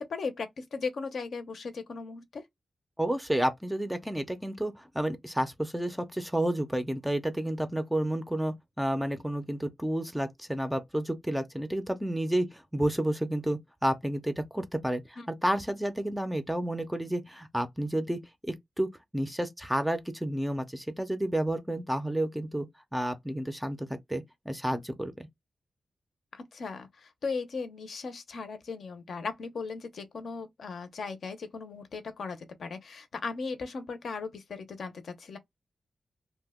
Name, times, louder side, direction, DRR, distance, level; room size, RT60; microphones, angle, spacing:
voice 1, 0.0-2.4 15.2-15.3 26.3-35.4, left 4 dB, 65° left, 0.6 m, -37 dB
voice 2, 3.0-22.7 22.9-25.3, right 1 dB, 5° right, 0.5 m, -31 dB
2.8 x 2.1 x 3.5 m
wide cardioid pair, 150°, 0 cm